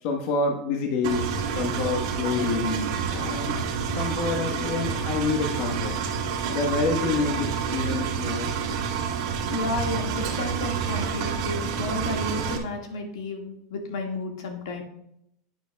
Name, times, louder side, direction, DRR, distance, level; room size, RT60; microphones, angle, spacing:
voice 1, 0.0-3.7 3.9-5.9 6.5-8.8, left 4 dB, 55° left, 2 dB, 1.2 m, -28 dB
Engine, 1.0-12.6, right 6 dB, 75° right, 1.5 m, -28 dB
voice 2, 9.5-14.8, left 2 dB, 90° left, 2 dB, 1.8 m, -32 dB
11.0 x 9.0 x 2.3 m, 0.73 s
supercardioid pair, 145°, 2 cm